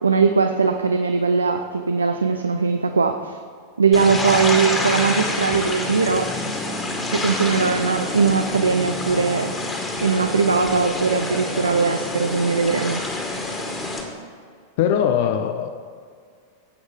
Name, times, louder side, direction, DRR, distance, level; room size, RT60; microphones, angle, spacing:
voice 1, 0.0-3.4 3.8-6.3 7.1-9.5 10.0-13.0, right 5 dB, 75° right, 6 dB, 0.5 m, -20 dB
sound 1, 3.9-14.0, left 2 dB, 15° left, 1.9 m, -27 dB
voice 2, 14.8-15.9, left 8 dB, 50° left, 8 dB, 0.5 m, -21 dB
17.0 x 8.0 x 3.6 m, 2.2 s
figure-of-eight pair, 90°, 0 cm